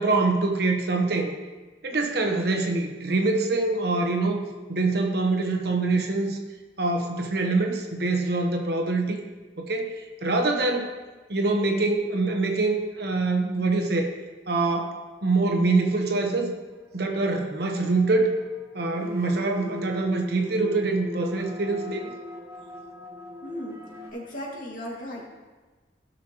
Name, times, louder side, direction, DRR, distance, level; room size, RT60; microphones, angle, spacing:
voice 1, 0.0-1.3 1.8-4.4 4.7-6.4 6.8-9.2 9.6-10.9 11.3-14.1 14.5-16.5 16.9-18.4 18.7-22.1, right 3 dB, 60° right, 3 dB, 1.1 m, -24 dB
sound 1, 16.9-24.1, left 2 dB, 15° right, 1.2 m, -40 dB
voice 2, 23.4-23.8 24.1-25.2, equal, 45° left, -4 dB, 2.2 m, -36 dB
16.0 x 6.3 x 3.0 m, 1.3 s
head